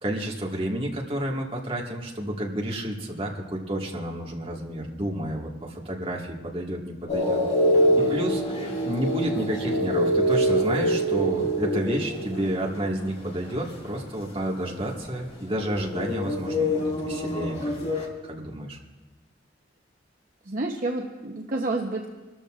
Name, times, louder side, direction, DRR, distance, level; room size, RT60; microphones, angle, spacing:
voice 1, 0.0-7.4 8.0-8.4 8.9-17.9 18.2-18.8, right 1 dB, 30° right, -1 dB, 1.8 m, -30 dB
sound 1, 7.1-14.4 14.7-18.0, equal, 35° left, 2.1 m, -25 dB
voice 2, 20.5-22.1, right 2 dB, 50° right, 1 dB, 0.9 m, -29 dB
25.0 x 13.5 x 2.5 m, 1.2 s
head